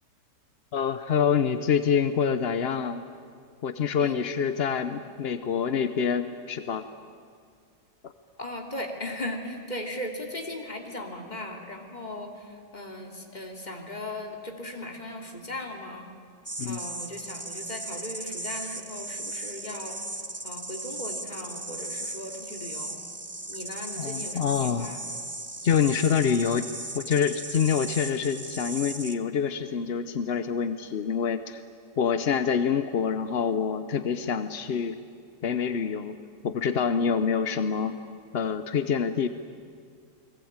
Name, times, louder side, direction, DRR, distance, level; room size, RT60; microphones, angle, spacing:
voice 1, 0.7-3.0 3.6-6.9 8.0-8.1 16.6-16.8 24.0-24.9 25.6-26.7 26.9-31.6 32.0-35.0 35.4-36.2 36.4-38.0 38.3-39.3, left 7 dB, 55° left, 11 dB, 0.7 m, -26 dB
voice 2, 8.4-16.1 16.6-20.0 20.4-23.0 23.5-25.0, left 1 dB, 25° left, 2 dB, 2.9 m, -38 dB
sound 1, 16.4-29.1, right 2 dB, 15° right, 0.6 m, -37 dB
30.0 x 21.0 x 8.8 m, 2.2 s
omnidirectional pair, 1.9 m